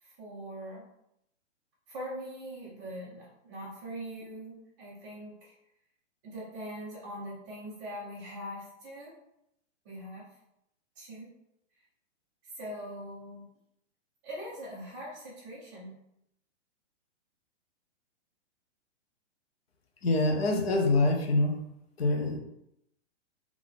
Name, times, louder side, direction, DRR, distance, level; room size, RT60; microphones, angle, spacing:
voice 1, 0.0-0.8 1.9-5.5 6.2-9.1 9.8-10.3 11.0-11.3 12.4-13.4 14.2-15.9, equal, 15° right, -6 dB, 0.8 m, -42 dB
voice 2, 20.0-21.6 22.0-22.4, left 2 dB, 55° left, 2 dB, 1.0 m, -25 dB
3.7 x 3.1 x 3.7 m, 0.80 s
hypercardioid pair, 175°, 36 cm